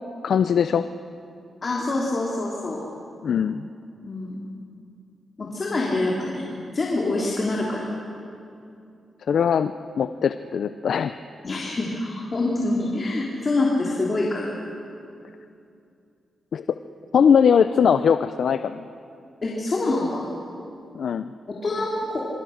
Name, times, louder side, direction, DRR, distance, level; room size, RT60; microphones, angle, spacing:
voice 1, 0.2-0.8 3.2-3.7 9.3-11.2 16.5-16.6 17.1-18.9 20.9-21.3, left 7 dB, 70° left, 10 dB, 0.6 m, -20 dB
voice 2, 1.6-2.8 4.0-4.4 5.4-6.4 6.7-7.9 11.4-14.5 19.4-20.3 21.5-22.3, left 2 dB, 40° left, -3 dB, 3.3 m, -25 dB
26.5 x 24.5 x 6.5 m, 2.5 s
wide cardioid pair, 120°, 0 cm